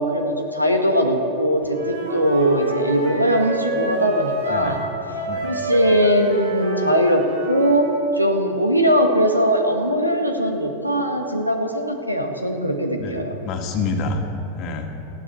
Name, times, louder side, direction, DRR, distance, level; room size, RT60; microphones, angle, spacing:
voice 1, 0.0-4.8 5.4-13.4, equal, 90° right, 4 dB, 1.4 m, -20 dB
Wind instrument woodwind instrument, 1.7-7.9, right 2 dB, 70° right, 3.1 m, -27 dB
voice 2, 13.0-14.2 14.6-14.9, left 3 dB, 40° left, 4 dB, 1.9 m, -27 dB
19.0 x 14.0 x 4.4 m, 2.9 s
figure-of-eight pair, 90°, 0 cm